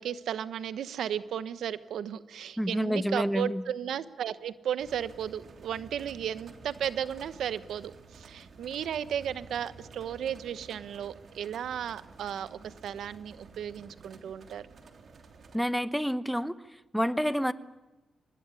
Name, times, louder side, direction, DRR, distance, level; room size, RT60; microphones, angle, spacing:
voice 1, 0.0-14.7, right 9 dB, 85° right, 14 dB, 1.0 m, -35 dB
voice 2, 2.6-3.6 15.5-16.5 16.9-17.5, equal, ahead, 14 dB, 1.0 m, -28 dB
sound 1, 4.8-15.6, right 4 dB, 55° right, 3.3 m, -51 dB
25.0 x 20.0 x 9.9 m, 1.1 s
cardioid pair, 105°, 0 cm